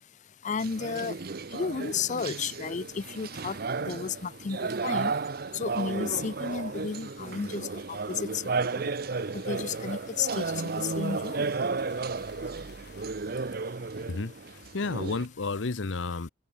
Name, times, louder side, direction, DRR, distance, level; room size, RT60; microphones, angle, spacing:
voice 1, 0.4-1.2 1.5-5.1 5.5-8.9 9.3-11.5, left 5 dB, 40° left, 0.5 m, -33 dB
sound 1, 0.6-15.3, right 4 dB, 55° right, 0.8 m, -33 dB
sound 2, 7.5-13.1, left 6 dB, 60° left, 2.5 m, -57 dB
voice 2, 14.7-16.3, left 3 dB, 90° left, 0.9 m, -31 dB
open air
head